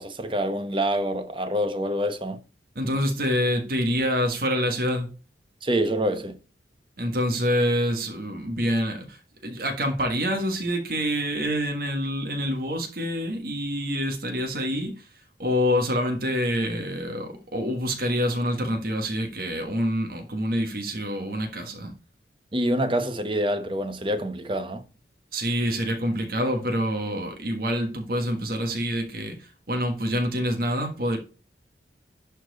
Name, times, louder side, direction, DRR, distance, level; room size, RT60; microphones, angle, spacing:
voice 1, 0.0-2.4 5.6-6.4 22.5-24.8, equal, 30° right, 1.0 m, -26 dB
voice 2, 2.7-5.1 7.0-15.1 15.4-21.9 25.3-31.2, equal, 55° right, 1.6 m, -26 dB
11.5 x 4.4 x 4.1 m
head